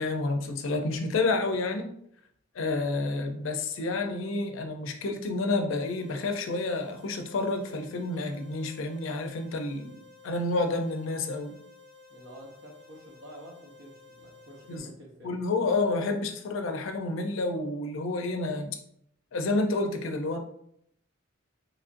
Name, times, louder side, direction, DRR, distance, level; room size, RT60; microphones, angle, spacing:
voice 1, 0.0-1.9 2.5-10.0 10.2-11.5 14.7-14.9 15.2-18.8 19.3-20.4, left 3 dB, 70° left, 5 dB, 0.4 m, -29 dB
sound 1, 5.8-14.8, left 4 dB, 5° left, 0.7 m, -54 dB
voice 2, 12.1-15.4, equal, 65° right, -3 dB, 0.8 m, -49 dB
3.1 x 2.5 x 2.5 m, 0.71 s
head